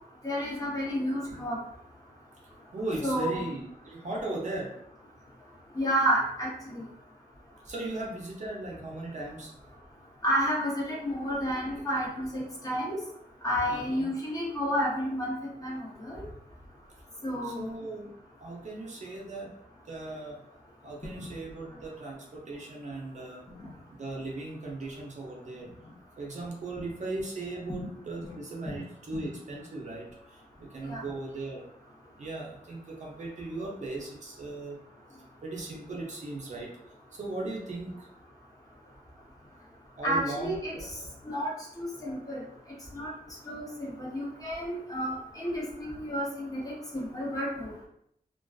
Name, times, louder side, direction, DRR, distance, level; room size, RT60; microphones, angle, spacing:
voice 1, 0.2-1.6 3.0-3.5 5.8-6.8 10.2-13.0 13.4-15.3 15.6-16.2 17.2-17.6 21.2-21.3 27.8-27.9 28.7-28.8 30.8-31.0 40.0-40.7 41.2-41.5 41.8-42.4 42.9-43.1 43.5-47.7, equal, 20° left, -4 dB, 0.6 m, -31 dB
voice 2, 2.7-4.7 7.6-9.5 13.7-14.1 17.4-18.1 18.4-19.5 19.9-20.4 20.8-23.4 23.9-25.7 26.2-31.7 32.2-34.8 35.4-36.7 37.1-38.1 40.0-40.9 42.0-42.2, right 2 dB, 50° right, -2 dB, 0.6 m, -38 dB
2.4 x 2.2 x 2.3 m, 0.72 s
wide cardioid pair, 155°, 16 cm